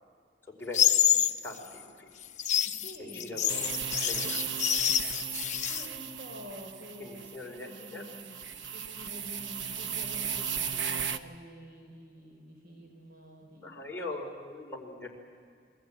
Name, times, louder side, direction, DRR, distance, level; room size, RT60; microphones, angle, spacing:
voice 1, 0.6-1.0 1.4-2.1 3.1-4.4 7.0-8.1 13.6-15.1, left 2 dB, 10° left, -2 dB, 4.8 m, -41 dB
sound 1, 0.7-1.4 2.2-5.9, left 10 dB, 40° left, 0.9 m, -27 dB
voice 2, 2.6-3.4 5.7-7.2 7.6-13.8, equal, 55° right, 2 dB, 4.2 m, -48 dB
sound 2, 3.5-11.2, right 7 dB, 80° right, 1.0 m, -36 dB
29.0 x 22.0 x 8.9 m, 2.2 s
head